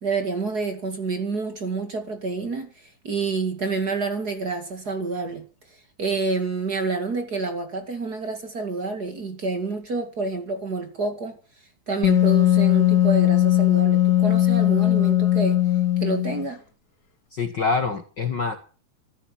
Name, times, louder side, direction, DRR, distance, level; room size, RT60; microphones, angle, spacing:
voice 1, 0.0-5.5 6.0-11.4 11.9-15.6 16.0-16.6, right 3 dB, 35° right, 2.4 m, -28 dB
Wind instrument woodwind instrument, 12.0-16.5, left 13 dB, 75° left, 4.2 m, -19 dB
voice 2, 17.3-18.6, left 4 dB, 45° left, 1.7 m, -25 dB
14.5 x 12.5 x 7.5 m
omnidirectional pair, 3.5 m